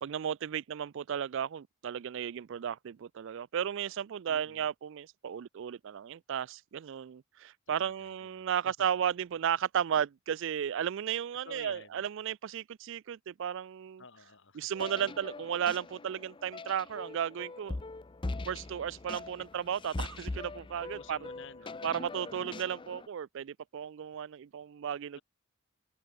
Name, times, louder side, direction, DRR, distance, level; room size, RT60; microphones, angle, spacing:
voice 1, 0.0-14.0 14.5-17.8 18.5-21.2 21.8-25.2, right 8 dB, 60° right, 0.3 m, -34 dB
voice 2, 4.3-4.7 7.8-8.7 11.4-12.0 14.0-14.7 20.9-21.8 22.1-22.5, left 4 dB, 55° left, 2.1 m, -52 dB
sound 1, 14.7-23.1, left 2 dB, 20° left, 0.5 m, -42 dB
open air
head